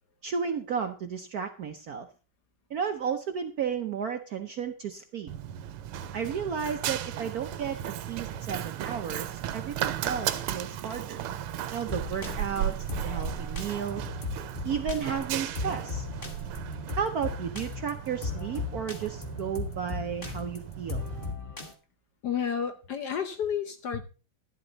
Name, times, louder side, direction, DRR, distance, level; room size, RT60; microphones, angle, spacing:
voice 1, 0.2-2.1 2.7-5.3 6.1-11.2 11.7-12.8 13.0-14.0 14.6-16.1 17.0-21.1, right 7 dB, 65° right, 6 dB, 0.9 m, -33 dB
Run, 5.3-21.3, right 10 dB, 80° right, 1.6 m, -36 dB
sound 1, 11.9-21.7, left 4 dB, 30° left, 1.4 m, -37 dB
voice 2, 22.2-24.0, left 8 dB, 60° left, 10 dB, 1.1 m, -31 dB
11.0 x 11.0 x 3.9 m, 0.34 s
omnidirectional pair, 2.4 m